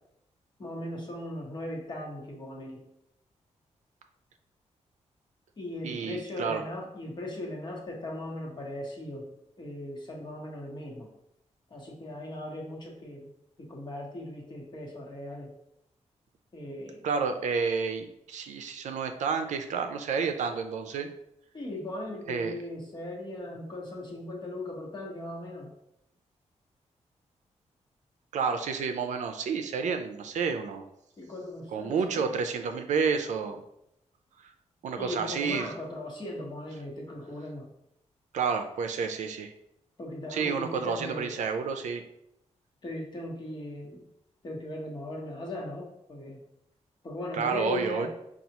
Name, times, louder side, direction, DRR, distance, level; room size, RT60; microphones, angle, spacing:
voice 1, 0.6-2.8 5.6-9.3 9.6-11.1 11.7-13.3 13.6-15.5 16.5-17.0 21.5-25.7 31.2-32.3 34.9-37.7 40.0-41.3 42.8-44.0 44.4-46.4 47.0-48.1, left 1 dB, 40° left, -2 dB, 1.1 m, -38 dB
voice 2, 5.8-6.6 17.0-21.1 22.3-22.6 28.3-30.8 31.7-33.6 34.8-35.7 38.3-39.5 40.3-42.0 47.3-48.1, right 5 dB, 85° right, 7 dB, 0.4 m, -30 dB
5.4 x 2.4 x 2.9 m, 0.79 s
wide cardioid pair, 125°, 12 cm